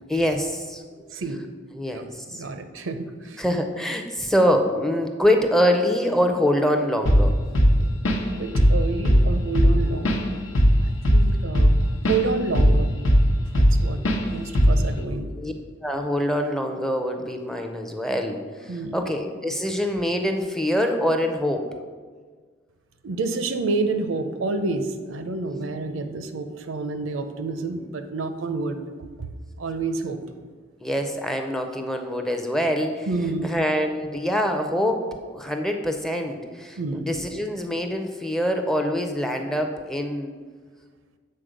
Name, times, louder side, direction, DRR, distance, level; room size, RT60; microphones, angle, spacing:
voice 1, 0.1-1.1 1.7-2.4 3.4-7.4 15.4-15.5 15.8-21.7 30.8-33.1 33.4-40.3, equal, ahead, 4 dB, 0.4 m, -25 dB
voice 2, 1.1-1.4 1.9-2.1 2.3-3.4 8.4-10.3 10.8-11.8 12.1-12.9 13.5-14.0 14.3-15.3 18.7-19.0 23.0-28.8 29.2-29.3 29.6-30.2 33.1-33.5 36.8-37.1, right 3 dB, 80° right, 8 dB, 0.6 m, -29 dB
Drum kit / Drum, 7.1-7.3 7.6-8.3 8.6-8.8 9.1-12.2 12.6-13.8 14.1-14.2 14.6-14.9, equal, 90° left, 0.9 m, -17 dB
7.7 x 4.2 x 5.1 m, 1.5 s
head